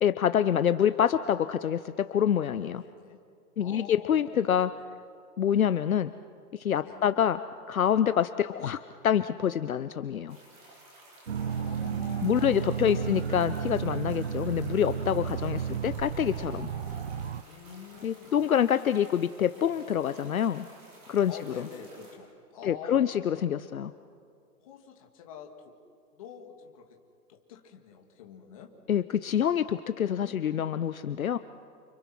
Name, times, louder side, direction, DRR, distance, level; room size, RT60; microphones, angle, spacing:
voice 1, 0.0-2.8 3.6-4.7 5.4-6.1 6.5-7.4 7.7-10.4 12.2-16.7 18.0-20.7 21.1-21.3 22.6-23.9 28.9-31.4, left 9 dB, 60° left, 12 dB, 0.9 m, -26 dB
voice 2, 2.8-3.2 3.6-4.4 4.7-4.9 6.8-7.1 11.4-13.3 15.5-15.8 17.4-18.4 21.3-23.4 24.6-25.7 26.1-26.9 27.3-28.7, left 7 dB, 20° left, 2 dB, 2.1 m, -47 dB
sound 1, 10.3-22.2, right 1 dB, 25° right, 5.0 m, -54 dB
sound 2, 11.3-17.4, right 8 dB, 45° right, 0.6 m, -33 dB
30.0 x 29.0 x 6.1 m, 2.3 s
hypercardioid pair, 175°, 47 cm